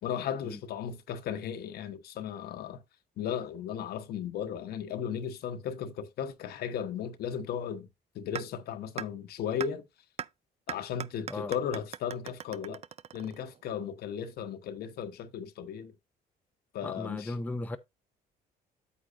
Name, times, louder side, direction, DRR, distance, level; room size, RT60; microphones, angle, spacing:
voice 1, 0.0-2.8 3.2-7.9 8.1-9.8 10.7-12.8 13.1-15.9 16.7-17.3, left 8 dB, 70° left, 1.1 m, -36 dB
sound 1, 8.4-8.5 9.0-9.1 9.6-9.7 10.2-10.3 10.7-13.6, right 9 dB, 40° right, 0.4 m, -38 dB
voice 2, 16.8-17.8, left 2 dB, 10° left, 0.6 m, -36 dB
8.4 x 7.6 x 2.5 m
cardioid pair, 110°, 17 cm